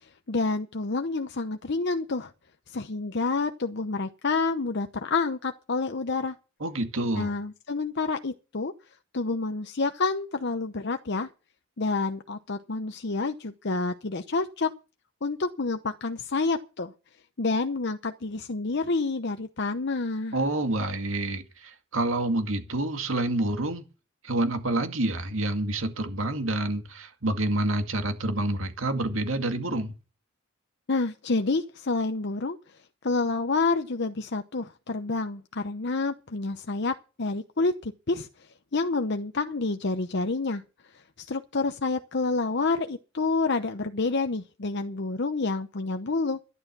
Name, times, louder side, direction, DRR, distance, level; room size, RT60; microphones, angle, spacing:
voice 1, 0.3-2.3 2.7-6.3 7.2-8.7 9.1-11.3 11.8-14.7 15.2-16.9 17.4-20.4 30.9-32.6 33.0-38.3 38.7-40.6 40.9-46.4, left 3 dB, 55° left, 0.8 m, -28 dB
voice 2, 6.6-7.3 20.3-23.8 24.2-29.9, right 2 dB, 75° right, 2.2 m, -28 dB
12.5 x 11.0 x 6.1 m
head